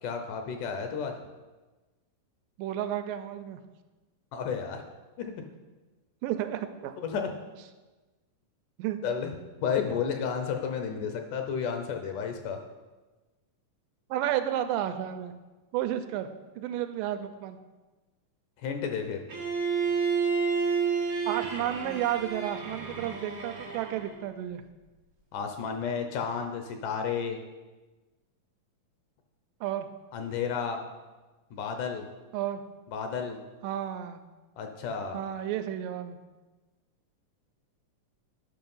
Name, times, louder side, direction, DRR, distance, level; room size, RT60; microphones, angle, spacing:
voice 1, 0.0-1.1 4.3-4.8 5.2-5.3 7.0-7.3 9.0-9.3 9.6-12.6 18.6-19.2 25.3-27.4 30.1-30.8 31.5-32.1 32.9-33.4 34.6-35.2, left 6 dB, 75° left, 5 dB, 2.1 m, -32 dB
voice 2, 2.6-3.6 6.2-6.9 8.8-9.0 14.1-15.3 15.7-16.3 16.6-17.6 21.3-24.6 29.6-29.9 32.3-32.6 33.6-34.2 35.1-36.2, right 11 dB, 80° right, 8 dB, 2.2 m, -32 dB
Bowed string instrument, 19.3-24.2, right 5 dB, 60° right, 0.8 m, -30 dB
9.7 x 5.8 x 5.5 m, 1.2 s
omnidirectional pair, 4.0 m